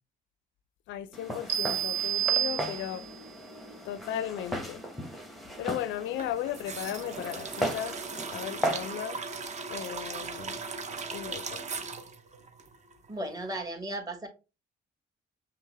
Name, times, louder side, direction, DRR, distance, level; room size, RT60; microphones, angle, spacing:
voice 1, 0.9-3.1 3.8-4.8 5.6-8.0 8.3-9.2 9.7-10.6 11.1-11.6, left 11 dB, 70° left, 0.4 m, -36 dB
Walk footsteps, 1.1-8.9, equal, ahead, 0.9 m, -37 dB
sound 1, 1.5-3.2, right 11 dB, 85° right, 0.9 m, -29 dB
sound 2, 6.2-13.2 13.5-13.6, right 4 dB, 35° right, 0.7 m, -38 dB
voice 2, 13.1-14.3, right 1 dB, 20° right, 1.4 m, -35 dB
5.4 x 2.0 x 3.3 m
cardioid pair, 85°, 20 cm